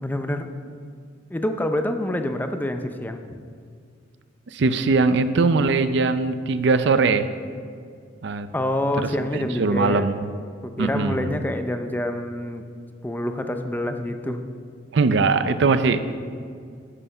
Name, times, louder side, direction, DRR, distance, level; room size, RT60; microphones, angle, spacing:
voice 1, 0.0-0.5 1.3-3.4 8.5-10.1 10.6-12.6 13.0-14.4, left 1 dB, 10° left, 6 dB, 0.5 m, -27 dB
voice 2, 4.5-7.3 8.2-8.5 9.0-10.3 10.8-11.4 14.9-16.0, right 4 dB, 65° right, 11 dB, 0.5 m, -21 dB
9.9 x 8.0 x 5.4 m, 2.2 s
head